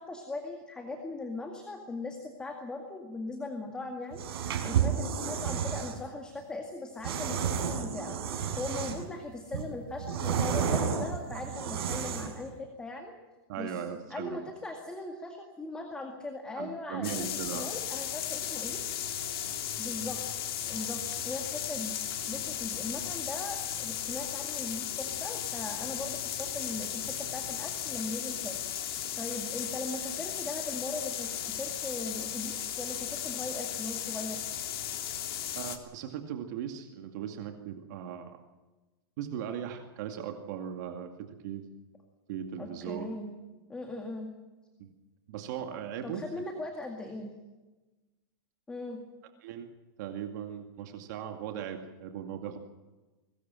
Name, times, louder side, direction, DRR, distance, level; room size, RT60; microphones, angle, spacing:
voice 1, 0.0-4.2 4.6-8.2 8.6-13.1 13.6-13.8 14.1-18.8 19.8-20.2 20.6-21.9 22.3-28.6 29.2-34.4 42.6-43.3 43.7-44.3 46.0-47.3 48.7-49.0, left 2 dB, 5° left, 3 dB, 2.0 m, -39 dB
sound 1, 4.1-6.0 7.0-9.1 9.5-12.4, right 7 dB, 75° right, 5.4 m, -31 dB
voice 2, 13.5-14.4 16.6-17.7 35.6-38.4 39.2-41.7 42.3-43.1 44.8-44.9 45.3-46.4 49.4-49.7 50.0-52.6, right 8 dB, 50° right, 5 dB, 2.3 m, -38 dB
sound 2, 17.0-35.8, left 10 dB, 75° left, 3.4 m, -35 dB
22.5 x 19.5 x 7.7 m, 1.2 s
supercardioid pair, 175°, 13 cm